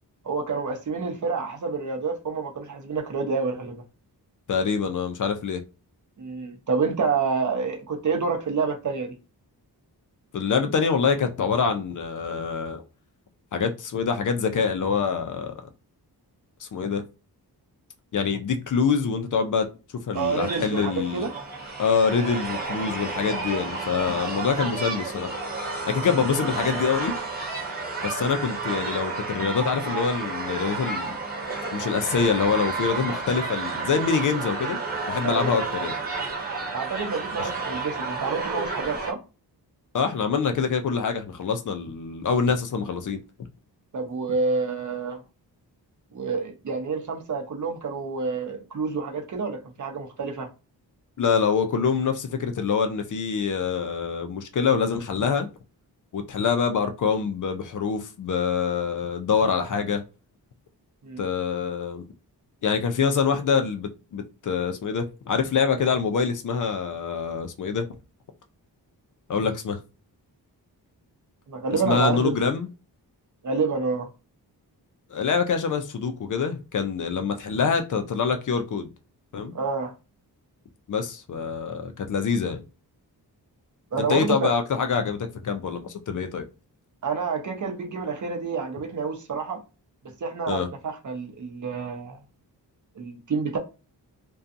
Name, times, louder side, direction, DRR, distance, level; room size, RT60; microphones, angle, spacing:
voice 1, 0.2-3.8 6.2-9.1 20.1-21.3 35.2-35.6 36.7-39.2 43.9-45.2 46.1-50.5 61.0-61.2 71.5-72.4 73.4-74.1 79.5-79.9 83.9-84.5 87.0-89.6 90.2-92.2 93.0-93.6, right 4 dB, 45° right, 0.7 m, -28 dB
voice 2, 4.5-5.6 10.3-12.8 13.5-15.6 16.6-17.0 18.1-19.7 20.1-21.3 21.8-25.3 25.9-27.1 28.0-31.2 31.7-34.8 35.1-36.0 37.4-37.5 39.9-43.2 51.2-55.5 56.1-60.0 61.2-62.1 62.6-67.9 69.3-69.8 71.7-72.7 75.1-78.9 79.3-79.5 80.9-82.6 84.0-86.4 90.5-90.7, left 6 dB, 50° left, 0.5 m, -25 dB
sound 1, 20.1-39.1, right 4 dB, 25° right, 1.0 m, -31 dB
2.6 x 2.2 x 2.5 m
cardioid pair, 85°, 40 cm